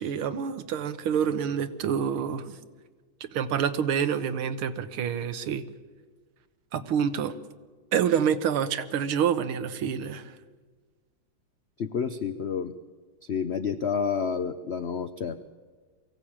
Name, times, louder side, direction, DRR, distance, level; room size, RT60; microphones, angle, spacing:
voice 1, 0.0-2.6 3.2-5.6 6.7-7.4 7.9-10.3, right 8 dB, 90° right, 11 dB, 2.0 m, -27 dB
voice 2, 11.8-12.7 13.2-15.4, left 6 dB, 85° left, 10 dB, 0.5 m, -29 dB
23.0 x 16.5 x 8.8 m, 1.5 s
omnidirectional pair, 2.2 m